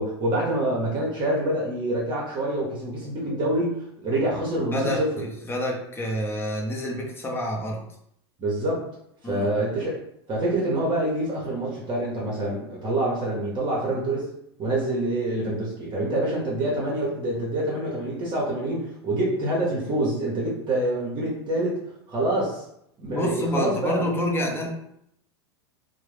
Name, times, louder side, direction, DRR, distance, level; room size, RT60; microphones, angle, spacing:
voice 1, 0.0-5.2 8.4-8.8 9.2-10.0 10.3-14.3 14.6-21.8 22.1-22.6 23.0-24.0, right 1 dB, 35° right, -4 dB, 0.8 m, -26 dB
voice 2, 5.5-7.8 9.2-9.5 23.1-24.7, left 1 dB, 15° left, -1 dB, 0.6 m, -27 dB
2.2 x 2.0 x 3.2 m, 0.74 s
hypercardioid pair, 100°, 14 cm